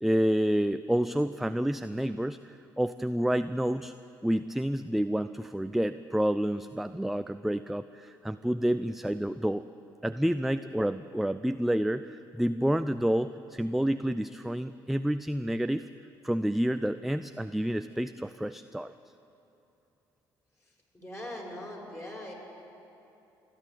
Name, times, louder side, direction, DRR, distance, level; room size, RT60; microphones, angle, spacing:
voice 1, 0.0-3.9 4.2-9.6 10.0-15.8 16.2-18.9, equal, ahead, 11 dB, 0.5 m, -29 dB
voice 2, 20.9-22.3, left 1 dB, 25° left, -2 dB, 6.7 m, -40 dB
27.5 x 11.0 x 9.3 m, 2.9 s
hypercardioid pair, 50°, 11 cm